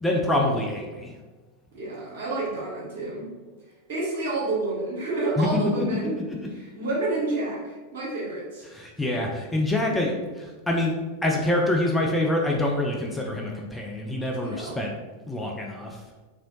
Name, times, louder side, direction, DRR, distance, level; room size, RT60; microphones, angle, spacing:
voice 1, 0.0-1.1 5.4-5.5 8.7-10.9 11.2-14.9 15.3-16.0, left 1 dB, 5° left, -1 dB, 0.4 m, -26 dB
voice 2, 1.7-3.3 3.9-6.2 6.5-8.6 14.4-14.8, right 2 dB, 55° right, -6 dB, 1.3 m, -29 dB
2.9 x 2.7 x 3.0 m, 1.3 s
figure-of-eight pair, 90°, 0 cm